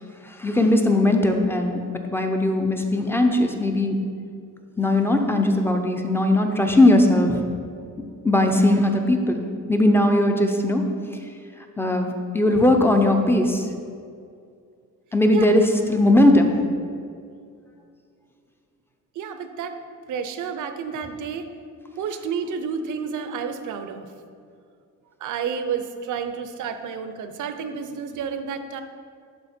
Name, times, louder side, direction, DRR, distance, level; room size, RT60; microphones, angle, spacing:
voice 1, 0.2-1.8 2.1-4.0 4.8-7.5 8.2-10.9 11.8-13.7 15.1-16.6, left 1 dB, 5° left, 4 dB, 0.5 m, -19 dB
voice 2, 19.2-19.8 20.1-21.5 22.0-24.1 25.2-28.8, right 6 dB, 70° right, 9 dB, 0.7 m, -30 dB
11.5 x 4.3 x 4.3 m, 2.3 s
cardioid pair, 155°, 32 cm